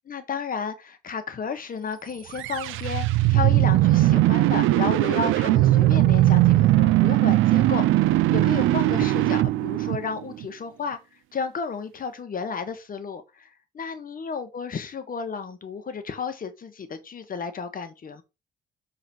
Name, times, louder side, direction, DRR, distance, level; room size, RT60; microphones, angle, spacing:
voice 1, 0.1-8.0 8.3-11.0 11.3-13.5 13.7-18.2, left 5 dB, 45° left, 1.5 m, -32 dB
sound 1, 2.3-10.5, right 16 dB, 85° right, 0.5 m, -20 dB
6.7 x 4.0 x 4.6 m
cardioid pair, 90°, 20 cm